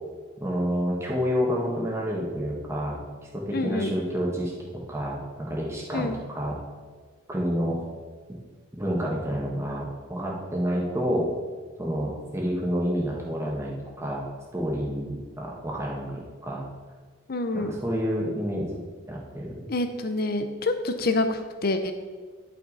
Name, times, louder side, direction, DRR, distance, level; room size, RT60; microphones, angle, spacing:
voice 1, 0.4-3.0 3.3-4.5 4.9-6.6 7.3-7.8 8.8-11.3 11.8-14.2 14.5-16.6 17.5-18.7 19.1-19.7, equal, 15° right, -3 dB, 1.5 m, -29 dB
voice 2, 3.5-3.9 5.9-6.2 17.3-17.7 19.7-21.9, left 2 dB, 45° left, 8 dB, 0.7 m, -27 dB
10.5 x 6.0 x 4.1 m, 1.5 s
head